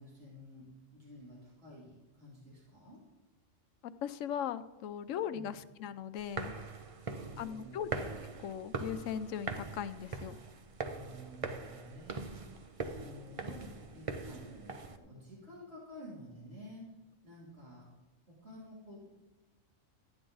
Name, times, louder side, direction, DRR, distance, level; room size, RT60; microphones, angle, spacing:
voice 1, 0.0-3.0 5.3-5.6 7.0-7.9 10.9-12.5 12.8-16.9 17.2-17.9 18.3-19.1, equal, 50° right, -6 dB, 3.4 m, -51 dB
voice 2, 4.0-6.5 7.4-8.1 8.4-10.4, left 9 dB, 80° left, 12 dB, 1.0 m, -39 dB
sound 1, 6.2-15.0, right 4 dB, 35° right, 0.6 m, -42 dB
13.5 x 9.8 x 3.9 m, 1.0 s
omnidirectional pair, 1.3 m